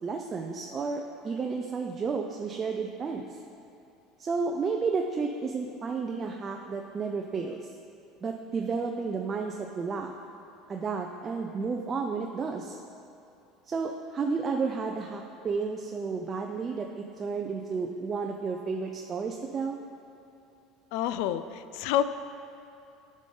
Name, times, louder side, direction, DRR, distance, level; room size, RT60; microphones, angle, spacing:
voice 1, 0.0-3.3 4.2-7.6 8.2-10.1 10.7-12.8 13.7-19.8, right 4 dB, 30° right, 2 dB, 0.4 m, -32 dB
voice 2, 20.9-22.0, left 11 dB, 75° left, 12 dB, 0.3 m, -28 dB
10.5 x 5.1 x 3.8 m, 2.7 s
supercardioid pair, 115°, 0 cm